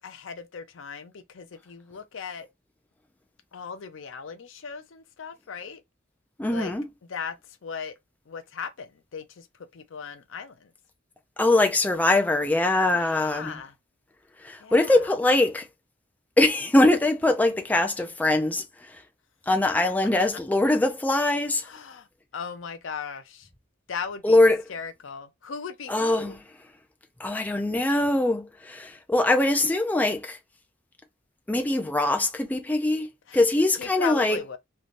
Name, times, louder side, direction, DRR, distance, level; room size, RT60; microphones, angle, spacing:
voice 1, 0.0-2.5 3.5-5.8 6.5-6.7 7.1-8.0 8.3-10.7 12.9-13.8 14.6-15.1 20.3-20.4 21.6-22.1 22.3-23.5 23.9-24.4 24.7-26.4 33.3-33.4 33.8-34.6, left 6 dB, 80° left, 0.5 m, -37 dB
voice 2, 6.4-6.8 11.4-13.6 14.4-15.7 16.4-18.6 18.9-19.0 19.5-21.7 24.2-24.6 25.9-26.4 27.2-30.4 31.5-33.1 33.3-34.4, left 2 dB, 10° left, 0.4 m, -22 dB
3.2 x 2.6 x 2.5 m
head